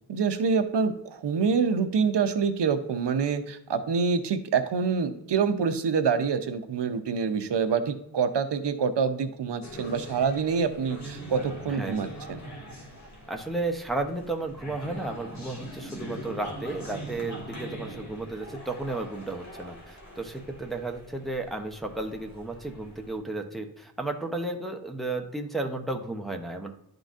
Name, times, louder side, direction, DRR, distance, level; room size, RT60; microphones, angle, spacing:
voice 1, 0.1-12.4, right 5 dB, 80° right, 9 dB, 0.6 m, -26 dB
sound 1, 9.6-23.2, equal, 40° left, 1.8 m, -42 dB
voice 2, 13.3-26.7, right 2 dB, ahead, 3 dB, 0.7 m, -33 dB
11.0 x 3.9 x 2.4 m, 0.78 s
wide cardioid pair, 90°, 41 cm